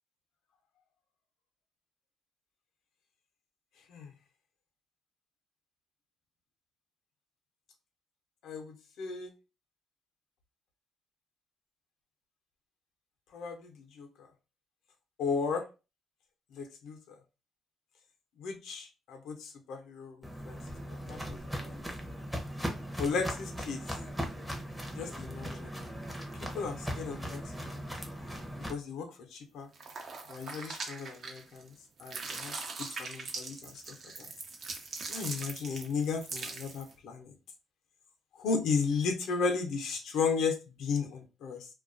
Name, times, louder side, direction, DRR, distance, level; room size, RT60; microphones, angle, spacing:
voice 1, 8.4-9.3 13.3-14.3 15.2-15.6 16.5-17.0 18.4-20.6 20.9-21.7 23.0-23.8 24.9-25.7 26.5-27.8 28.7-29.7 30.3-31.7 32.0-34.3 35.1-37.3 38.4-41.7, left 5 dB, 80° left, 0.5 m, -35 dB
Walk footsteps, 20.2-28.7, equal, ahead, 0.6 m, -39 dB
sound 1, 29.7-31.7 32.0-36.9, right 4 dB, 55° right, 0.6 m, -41 dB
2.3 x 2.2 x 2.5 m
cardioid pair, 90°, 0 cm